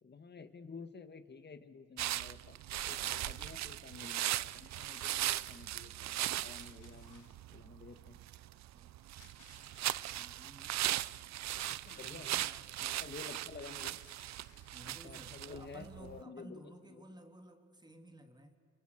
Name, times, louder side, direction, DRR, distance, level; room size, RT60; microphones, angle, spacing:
voice 1, 0.0-6.1 6.4-8.2 11.5-12.4 12.8-14.0 14.8-16.6 16.9-17.0, left 4 dB, 35° left, 10 dB, 2.0 m, -51 dB
sound 1, 2.0-16.2, right 14 dB, 65° right, 0.6 m, -39 dB
sound 2, 2.8-3.8 4.7-6.0 6.5-7.5 9.2-10.3 11.5-12.7 13.5-15.0, left 8 dB, 80° left, 2.4 m, -64 dB
voice 2, 8.7-9.1 9.9-10.8 11.5-12.6 14.7-18.6, right 1 dB, 15° right, 5 dB, 3.0 m, -55 dB
29.0 x 28.5 x 6.7 m, 2.3 s
cardioid pair, 90°, 30 cm